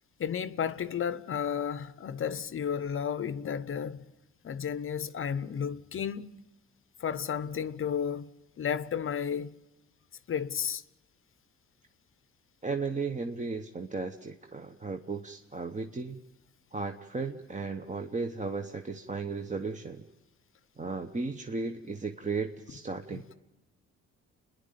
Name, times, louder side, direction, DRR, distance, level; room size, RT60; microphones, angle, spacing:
voice 1, 0.2-4.0 4.4-6.3 7.0-8.3 8.6-9.5 10.3-10.8 23.1-23.2, left 7 dB, 45° left, 0.8 m, -32 dB
voice 2, 12.6-16.2 16.7-20.0 20.8-23.3, right 4 dB, 25° right, 1.0 m, -35 dB
28.0 x 10.5 x 9.2 m
cardioid pair, 90°, 30 cm